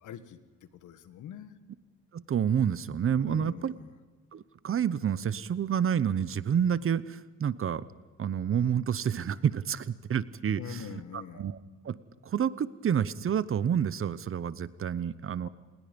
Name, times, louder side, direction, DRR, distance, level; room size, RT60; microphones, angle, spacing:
voice 1, 0.0-1.6 3.2-3.9 10.6-11.5 15.4-15.5, left 9 dB, 80° left, 11 dB, 1.5 m, -44 dB
voice 2, 2.1-3.7 4.3-7.9 8.2-10.6 11.4-11.6 11.8-15.5, right 8 dB, 45° right, 16 dB, 0.9 m, -29 dB
28.0 x 20.0 x 5.3 m, 1.3 s
cardioid pair, 90°, 30 cm